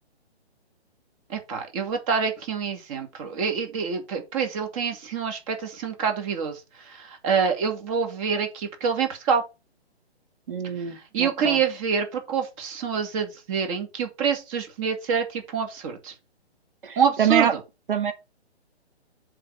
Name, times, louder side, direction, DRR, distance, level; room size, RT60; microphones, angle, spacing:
voice 1, 1.3-6.6 6.9-9.4 11.1-16.1 17.0-17.5, right 6 dB, 30° right, 2.3 m, -26 dB
voice 2, 10.5-11.6 16.8-17.5 17.9-18.1, right 9 dB, 55° right, 2.1 m, -25 dB
7.4 x 4.2 x 5.8 m
figure-of-eight pair, 135°, 33 cm